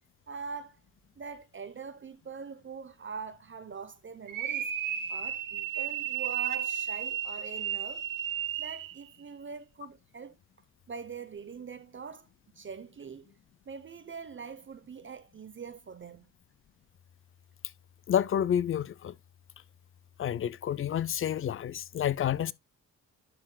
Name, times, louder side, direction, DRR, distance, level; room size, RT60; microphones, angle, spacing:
voice 1, 0.3-0.8 1.2-4.7 5.1-8.0 8.6-10.4 10.9-12.3 12.5-13.3 13.7-16.3, right 5 dB, 40° right, 0.8 m, -43 dB
sound 1, 4.3-9.0, right 10 dB, 90° right, 1.2 m, -33 dB
voice 2, 18.1-19.1 20.2-22.5, left 10 dB, 40° left, 0.5 m, -29 dB
11.0 x 5.7 x 2.2 m
cardioid pair, 110°, 32 cm